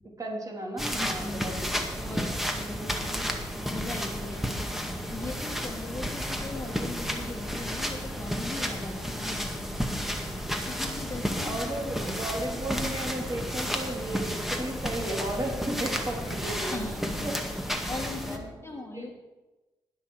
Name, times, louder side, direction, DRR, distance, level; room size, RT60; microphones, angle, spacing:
voice 1, 0.2-2.4 11.4-19.1, right 1 dB, 35° right, 0 dB, 3.7 m, -35 dB
sound 1, 0.8-18.4, equal, ahead, 2.0 m, -32 dB
voice 2, 1.0-1.6 2.0-4.7 5.1-10.2 10.6-11.6 16.1-16.2 16.6-17.4 17.9-19.1, left 2 dB, 25° left, 1 dB, 2.1 m, -40 dB
19.5 x 6.5 x 5.0 m, 1.1 s
hypercardioid pair, 45°, 11 cm